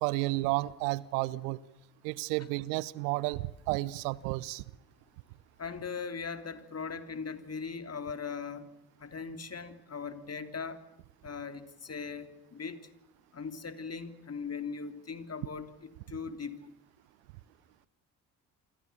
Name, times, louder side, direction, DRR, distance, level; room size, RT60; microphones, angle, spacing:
voice 1, 0.0-1.6 2.0-4.6, right 20 dB, 70° right, 0.9 m, -32 dB
voice 2, 5.6-8.7 9.0-10.8 11.2-12.8 13.3-16.7, left 5 dB, 30° left, 3.2 m, -39 dB
28.5 x 25.5 x 7.0 m
figure-of-eight pair, 45°, 48 cm